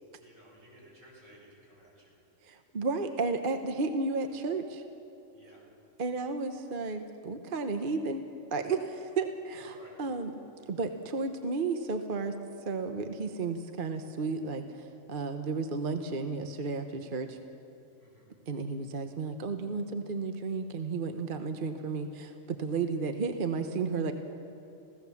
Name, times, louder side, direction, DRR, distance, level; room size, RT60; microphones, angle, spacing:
voice 1, 0.2-2.2 5.3-5.7 9.6-10.0 18.0-18.3, right 1 dB, 80° right, -4 dB, 7.0 m, -56 dB
voice 2, 2.4-4.8 6.0-8.2 8.5-10.3 10.7-12.3 12.6-17.4 18.5-24.1, right 4 dB, 45° right, 6 dB, 1.1 m, -33 dB
27.0 x 16.5 x 7.1 m, 2.9 s
omnidirectional pair, 1.4 m